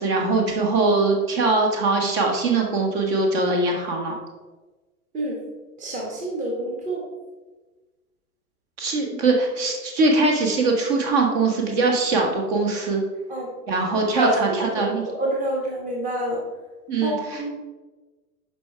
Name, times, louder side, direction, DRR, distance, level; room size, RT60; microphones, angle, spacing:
voice 1, 0.0-4.1 8.8-13.0 13.7-15.0 16.9-17.4, right 3 dB, 40° right, 1 dB, 1.7 m, -22 dB
voice 2, 5.8-7.0 13.3-13.5 14.2-16.4 17.0-17.5, right 1 dB, 15° right, -2 dB, 1.2 m, -27 dB
11.5 x 4.7 x 3.4 m, 1.3 s
figure-of-eight pair, 100°, 45 cm